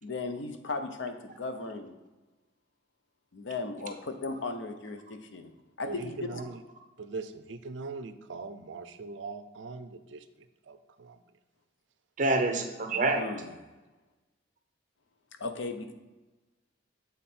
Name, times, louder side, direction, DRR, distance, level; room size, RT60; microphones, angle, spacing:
voice 1, 0.0-1.9 3.3-5.5 5.8-6.4 13.1-13.5 15.4-15.9, left 3 dB, 80° left, 7 dB, 0.7 m, -36 dB
voice 2, 5.9-6.6 7.0-10.2 10.7-11.2, right 3 dB, 75° right, 9 dB, 0.5 m, -41 dB
voice 3, 12.2-13.2, right 2 dB, 40° right, 5 dB, 0.8 m, -26 dB
7.3 x 3.9 x 4.2 m, 1.2 s
head